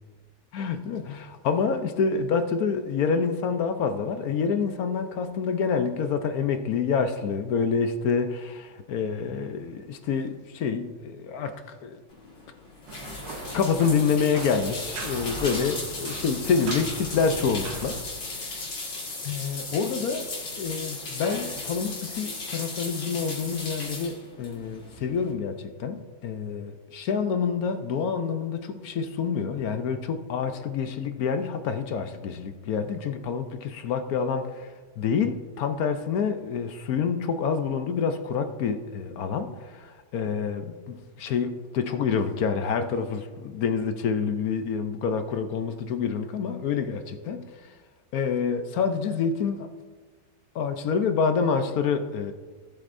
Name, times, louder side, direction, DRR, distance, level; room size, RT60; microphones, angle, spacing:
voice 1, 0.5-12.0 13.5-18.0 18.4-18.5 19.2-34.7 35.0-47.5 48.1-49.7 50.5-52.3, left 6 dB, 65° left, 8 dB, 1.0 m, -27 dB
sound 1, 12.1-25.3, left 3 dB, 80° left, 2.7 m, -36 dB
sound 2, 12.9-18.0, right 4 dB, 90° right, 1.7 m, -39 dB
17.5 x 7.9 x 2.6 m, 1.4 s
omnidirectional pair, 1.9 m